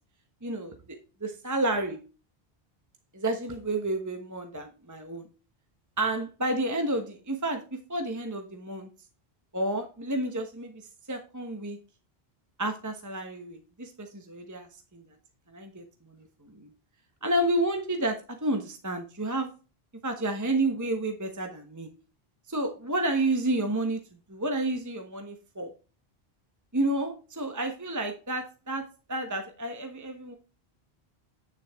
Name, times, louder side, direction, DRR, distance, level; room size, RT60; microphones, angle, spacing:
voice 1, 0.4-2.0 3.1-5.3 6.0-8.9 9.5-11.8 12.6-14.7 14.9-15.0 15.5-16.7 17.2-19.5 20.0-21.9 22.5-24.0 24.3-25.7 26.7-30.4, right 1 dB, 20° right, 4 dB, 1.1 m, -30 dB
9.3 x 7.2 x 3.5 m, 0.33 s
omnidirectional pair, 1.0 m